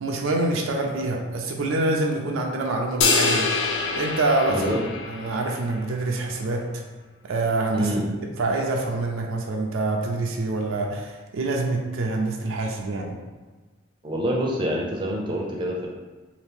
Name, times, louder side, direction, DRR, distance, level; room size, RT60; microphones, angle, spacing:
voice 1, 0.0-3.5 3.9-4.7 5.1-6.8 7.2-7.9 8.4-13.1, right 2 dB, 85° right, 1 dB, 0.4 m, -26 dB
sound 1, 3.0-5.6, left 4 dB, 60° left, 0.4 m, -24 dB
voice 2, 4.5-4.8 7.7-8.0 14.0-15.9, equal, 25° right, -2 dB, 0.5 m, -26 dB
2.8 x 2.5 x 3.4 m, 1.3 s
head